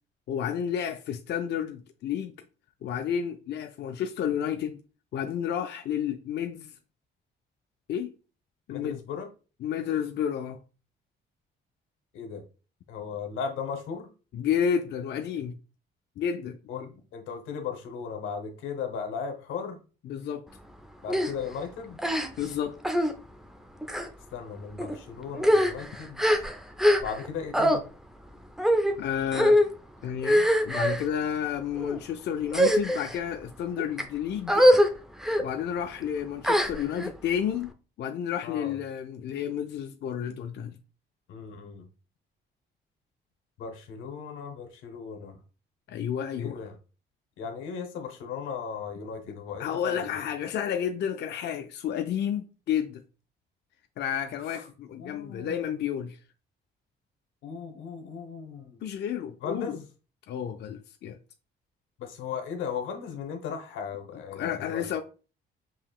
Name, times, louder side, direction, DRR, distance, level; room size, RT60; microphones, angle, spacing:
voice 1, 0.3-2.3 2.8-4.8 5.1-6.7 7.9-8.1 8.7-9.0 9.6-10.6 14.3-15.5 16.2-16.6 20.0-20.5 22.4-22.8 29.0-29.6 30.0-34.7 35.4-37.7 38.0-40.8 45.9-46.6 49.6-53.0 54.0-56.2 58.8-59.8 60.3-61.2 64.3-65.0, left 8 dB, 60° left, 0.4 m, -31 dB
voice 2, 8.7-9.3 12.1-12.4 12.9-14.1 16.7-19.8 21.0-22.0 24.3-26.2 27.0-27.8 38.4-38.8 41.3-41.9 43.6-45.4 46.4-46.7 47.4-50.2 54.5-54.6 55.0-55.7 57.4-58.8 59.4-59.8 62.0-64.9, left 6 dB, 90° left, 0.9 m, -37 dB
sound 1, 21.1-21.3 22.0-22.5 22.8-23.1 23.8-24.1 24.8-25.0 25.3-27.3 27.5-27.8 28.6-28.9 29.3-29.7 30.2-31.1 31.7-32.0 32.5-33.2 33.8-34.0 34.5-34.9 35.2-35.4 36.4-37.1, equal, ahead, 0.5 m, -23 dB
5.5 x 2.8 x 2.3 m
cardioid pair, 90°, 20 cm